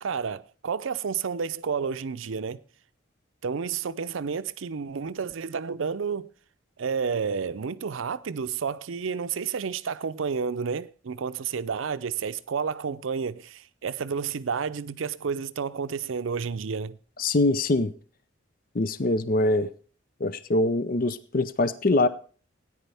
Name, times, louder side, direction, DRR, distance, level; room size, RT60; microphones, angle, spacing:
voice 1, 0.0-2.6 3.4-6.3 6.8-17.0, right 6 dB, 85° right, 0.5 m, -30 dB
voice 2, 17.2-17.9 18.7-19.7 20.2-22.1, left 2 dB, 45° left, 0.6 m, -23 dB
17.5 x 9.8 x 3.4 m
head